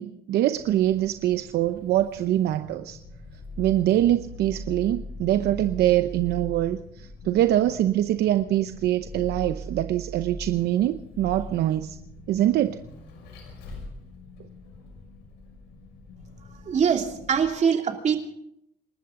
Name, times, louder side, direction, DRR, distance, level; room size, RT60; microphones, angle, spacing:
voice 1, 0.0-3.0 3.6-12.0 12.3-12.8, right 13 dB, 75° right, 9 dB, 0.8 m, -24 dB
Vehicle, 0.6-17.5, left 1 dB, 90° left, 6.1 m, -41 dB
voice 2, 16.6-18.2, right 7 dB, 45° right, 3 dB, 2.9 m, -23 dB
28.0 x 13.0 x 3.8 m, 0.73 s
cardioid pair, 110°, 17 cm